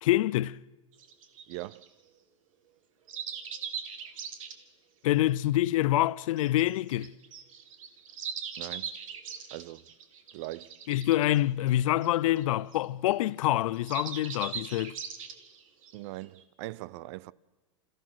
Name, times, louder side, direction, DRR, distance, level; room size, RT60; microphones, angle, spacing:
voice 1, 0.0-0.6 5.0-7.1 10.9-15.0, left 14 dB, 75° left, 0.5 m, -26 dB
sound 1, 0.9-1.9 3.1-4.5 6.2-13.1 13.4-16.4, right 7 dB, 75° right, 2.2 m, -40 dB
voice 2, 1.5-1.9 8.6-8.9 9.5-9.8 10.3-10.7 15.9-17.3, right 18 dB, 55° right, 0.6 m, -40 dB
27.5 x 15.0 x 6.2 m
supercardioid pair, 130°, 17 cm